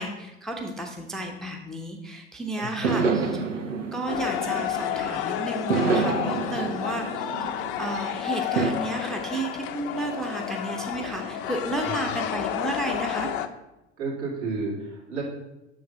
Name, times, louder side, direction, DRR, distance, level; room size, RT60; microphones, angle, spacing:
voice 1, 0.0-3.4 3.9-13.3, right 2 dB, ahead, 2 dB, 0.6 m, -32 dB
voice 2, 2.6-2.9 14.0-15.2, right 3 dB, 70° right, -5 dB, 2.4 m, -31 dB
sound 1, 2.8-5.1 5.7-8.0 8.5-8.7, right 4 dB, 85° right, 0.7 m, -27 dB
sound 2, 4.1-13.5, left 10 dB, 50° left, 0.5 m, -30 dB
6.5 x 3.9 x 5.5 m, 0.95 s
figure-of-eight pair, 80°, 36 cm